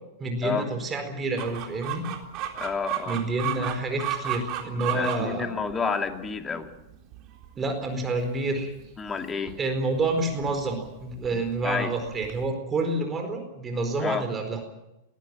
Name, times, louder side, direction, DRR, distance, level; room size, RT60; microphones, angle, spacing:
voice 1, 0.2-2.1 3.1-5.5 7.6-8.7 9.6-14.6, right 2 dB, 20° right, 5 dB, 4.5 m, -28 dB
Chicken rooster, 1.4-12.5, right 11 dB, 40° right, 3.8 m, -36 dB
voice 2, 2.5-3.2 4.9-6.7 9.0-9.6 11.6-12.0 14.0-14.3, left 5 dB, 20° left, 6 dB, 2.4 m, -30 dB
21.0 x 17.0 x 9.2 m, 0.91 s
figure-of-eight pair, 95°, 0 cm